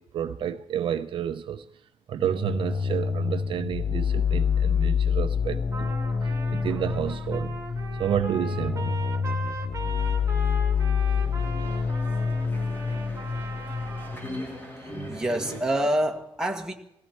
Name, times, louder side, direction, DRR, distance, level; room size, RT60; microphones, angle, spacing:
voice 1, 0.0-1.7 2.1-5.9 6.2-7.6 8.0-9.0, right 9 dB, 55° right, 0.6 m, -30 dB
sound 1, 2.2-14.2, left 6 dB, 35° left, 0.6 m, -27 dB
Trumpet, 5.7-14.2, right 4 dB, 25° right, 2.1 m, -39 dB
sound 2, 9.9-15.6, equal, 20° left, 4.6 m, -41 dB
voice 2, 14.7-16.7, right 1 dB, 5° right, 1.6 m, -27 dB
19.0 x 16.0 x 4.5 m
cardioid pair, 145°, 10 cm